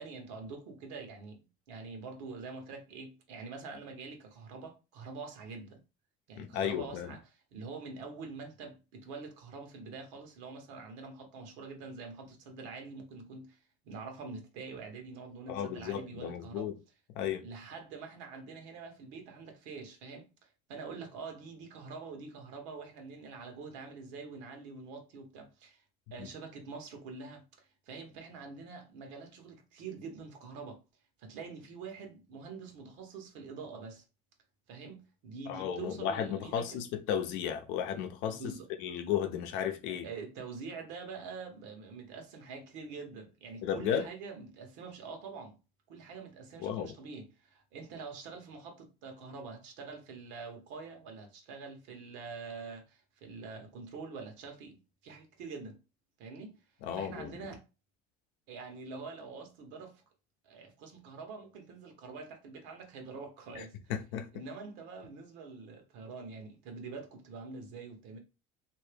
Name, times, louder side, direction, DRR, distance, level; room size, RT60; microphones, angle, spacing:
voice 1, 0.0-5.8 6.3-13.6 13.8-16.7 17.4-25.8 26.1-30.8 31.2-34.0 34.7-36.8 38.3-38.7 40.0-45.6 45.9-55.8 56.2-56.5 56.9-57.6 58.5-60.0 60.4-63.8 64.3-68.2, right 4 dB, 75° right, 1.1 m, -45 dB
voice 2, 6.4-7.1 15.5-16.8 17.1-17.5 26.2-26.3 35.5-38.5 38.8-40.1 43.6-44.1 46.6-46.9 56.8-57.3 63.6-63.7 63.9-64.3, left 9 dB, 75° left, 0.6 m, -34 dB
2.8 x 2.7 x 3.3 m
supercardioid pair, 105°, 19 cm